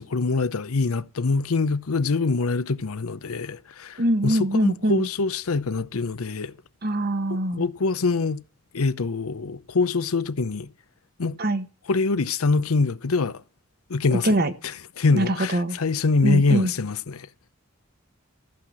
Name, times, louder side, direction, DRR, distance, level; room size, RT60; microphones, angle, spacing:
voice 1, 0.0-6.5 7.3-8.4 8.7-10.7 11.2-11.4 11.9-13.4 13.9-17.3, left 3 dB, 85° left, 0.7 m, -24 dB
voice 2, 4.0-5.1 6.8-7.6 11.4-11.6 14.2-14.5 15.1-15.7 16.2-16.7, right 1 dB, 45° right, 1.3 m, -23 dB
14.5 x 5.8 x 7.4 m
head